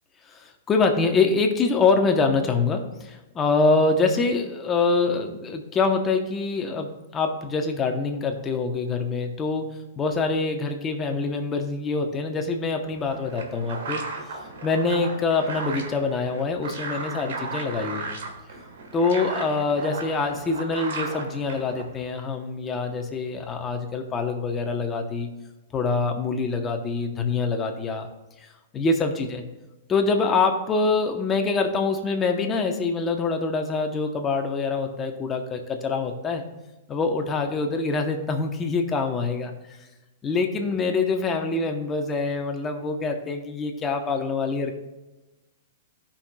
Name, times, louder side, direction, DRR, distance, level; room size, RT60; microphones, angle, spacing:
voice 1, 0.3-9.6 10.0-14.0 14.6-18.2 18.9-25.3 25.7-28.1 28.7-29.4 29.9-36.4 36.9-39.5 40.2-44.7, left 4 dB, 15° left, 4 dB, 0.9 m, -25 dB
sound 1, 12.8-22.1, right 3 dB, 80° right, 1.4 m, -35 dB
16.0 x 5.7 x 2.3 m, 1.1 s
hypercardioid pair, 155°, 0 cm